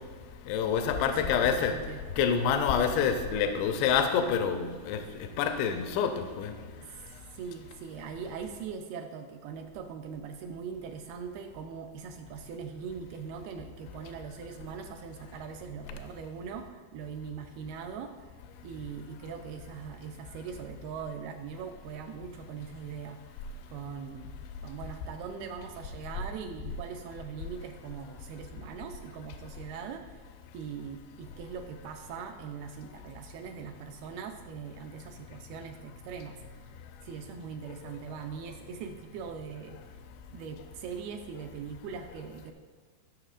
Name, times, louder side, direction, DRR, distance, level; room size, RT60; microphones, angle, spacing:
voice 1, 0.5-1.7 2.2-6.5 7.1-7.2, left 7 dB, 85° left, 6 dB, 2.8 m, -27 dB
voice 2, 1.1-2.0 6.8-18.1 18.6-23.2 23.7-24.4 24.6-30.2 30.5-36.4 37.0-39.8 40.3-42.5, right 6 dB, 80° right, 4 dB, 2.3 m, -41 dB
17.0 x 6.5 x 2.5 m, 1.5 s
omnidirectional pair, 4.9 m